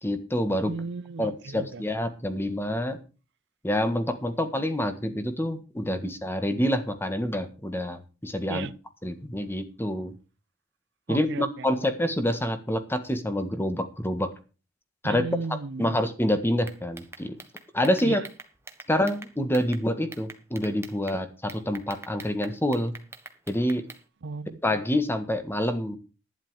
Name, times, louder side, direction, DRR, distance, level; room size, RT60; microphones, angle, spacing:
voice 1, 0.0-0.7 1.2-3.0 3.6-8.7 9.0-10.1 11.1-14.3 15.0-15.2 15.8-17.4 17.7-18.2 18.9-22.9 23.5-23.9 24.6-26.0, left 1 dB, 10° left, 1.6 m, -27 dB
voice 2, 0.6-1.8 8.5-8.7 11.1-11.9 15.0-16.0 18.0-18.3 24.2-24.6, right 4 dB, 65° right, 0.6 m, -35 dB
Pressing the Button of a Mosquito Killer Racquet, 16.7-19.8 20.1-21.2 21.5-24.0, right 3 dB, 15° right, 1.4 m, -44 dB
11.5 x 10.5 x 4.8 m
head